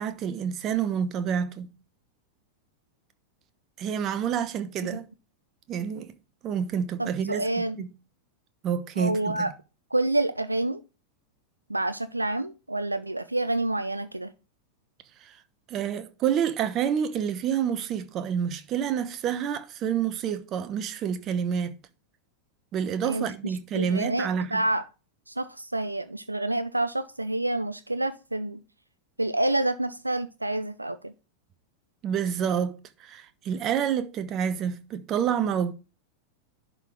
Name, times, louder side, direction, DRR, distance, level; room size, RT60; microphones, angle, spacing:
voice 1, 0.0-1.7 3.8-5.1 5.7-6.1 6.4-7.4 7.8-7.9 8.6-9.4 15.2-15.4 15.7-21.7 22.7-24.6 32.0-35.7, right 8 dB, 35° right, 1.0 m, -28 dB
voice 2, 7.0-7.8 9.0-9.5 9.9-10.8 11.7-14.3 23.0-24.9 25.3-28.6 29.2-31.1, right 2 dB, 85° right, 0.4 m, -28 dB
11.0 x 4.0 x 4.6 m
figure-of-eight pair, 90°, 0 cm